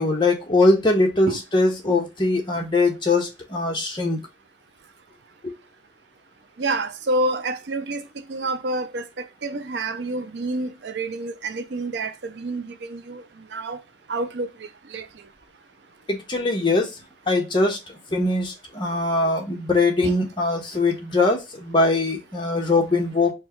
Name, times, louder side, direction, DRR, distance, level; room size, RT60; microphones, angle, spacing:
voice 1, 0.0-4.2 16.1-16.9 17.3-17.8 18.1-23.3, left 2 dB, 25° left, 1.2 m, -21 dB
voice 2, 6.6-8.0 8.3-9.0 9.4-13.2 13.5-13.8 14.1-14.5 14.9-15.1 20.0-20.2, right 2 dB, 75° right, 0.5 m, -28 dB
4.4 x 2.3 x 4.3 m
head